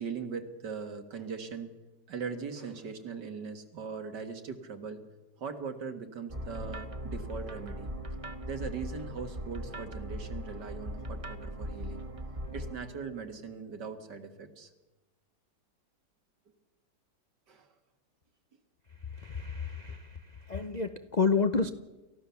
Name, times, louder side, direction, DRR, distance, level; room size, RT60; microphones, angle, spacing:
voice 1, 0.0-1.7 2.1-5.0 5.4-7.9 8.5-12.0 12.5-14.7 17.5-17.7, right 5 dB, 65° right, 7 dB, 2.4 m, -40 dB
sound 1, 6.3-12.7, equal, 20° right, 1.2 m, -39 dB
voice 2, 19.0-21.7, left 4 dB, 50° left, 9 dB, 0.5 m, -30 dB
29.0 x 15.0 x 7.1 m, 1.1 s
omnidirectional pair, 2.0 m